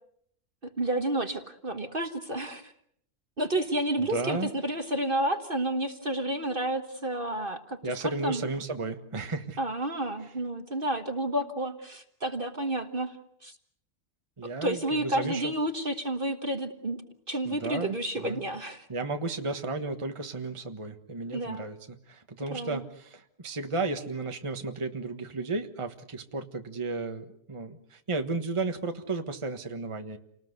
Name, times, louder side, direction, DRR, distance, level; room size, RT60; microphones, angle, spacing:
voice 1, 0.6-2.7 3.4-7.8 8.2-8.4 9.6-13.2 13.4-13.5 14.6-17.0 17.3-18.9 21.3-21.7 22.5-22.8, right 1 dB, 35° right, 7 dB, 1.5 m, -30 dB
voice 2, 4.0-4.5 7.8-9.6 14.4-15.5 17.4-18.4 18.9-21.8 22.1-30.2, right 3 dB, 20° right, 6 dB, 1.4 m, -33 dB
29.5 x 19.5 x 8.0 m, 0.70 s
omnidirectional pair, 1.6 m